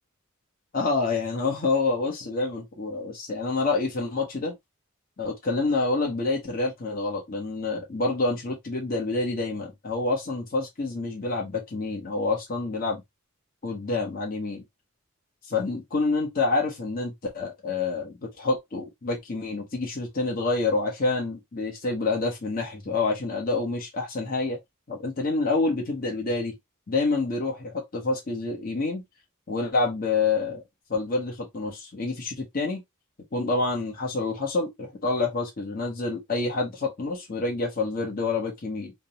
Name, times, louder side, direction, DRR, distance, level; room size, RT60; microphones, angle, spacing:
voice 1, 0.7-4.5 5.2-13.0 13.6-14.6 15.5-24.6 24.9-26.5 26.9-29.0 29.5-30.6 30.9-32.8 33.3-38.9, left 3 dB, 45° left, 0.9 m, -27 dB
3.4 x 2.0 x 2.7 m
head